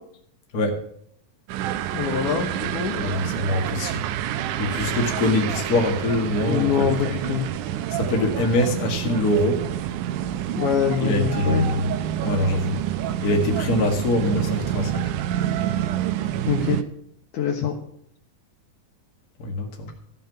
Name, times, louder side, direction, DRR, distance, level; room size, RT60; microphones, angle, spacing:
sound 1, 1.5-16.8, right 11 dB, 75° right, 2.0 m, -27 dB
voice 1, 1.9-3.0 6.4-7.4 10.6-11.7 16.5-16.8 17.3-17.7, left 8 dB, 65° left, 0 dB, 2.7 m, -24 dB
voice 2, 3.0-4.0 4.6-6.9 7.9-9.6 11.0-11.9 12.2-12.8 13.2-15.0 19.4-19.9, left 1 dB, 35° left, 3 dB, 1.6 m, -23 dB
15.0 x 5.5 x 9.3 m, 0.69 s
omnidirectional pair, 4.2 m